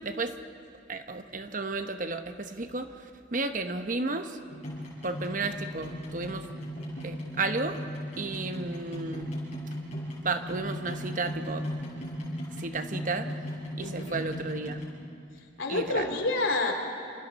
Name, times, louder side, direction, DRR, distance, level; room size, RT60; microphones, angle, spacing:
voice 1, 0.0-0.3 0.9-4.4 5.0-6.5 7.0-7.8 8.2-9.4 10.2-11.6 12.6-13.3 13.8-14.8 15.7-16.1, right 3 dB, 45° right, 7 dB, 1.0 m, -33 dB
sound 1, 4.5-14.8, equal, 35° left, 6.4 m, -37 dB
voice 2, 13.8-14.2 15.6-16.7, left 2 dB, 85° left, 2 dB, 3.1 m, -28 dB
28.0 x 27.0 x 4.2 m, 2.4 s
head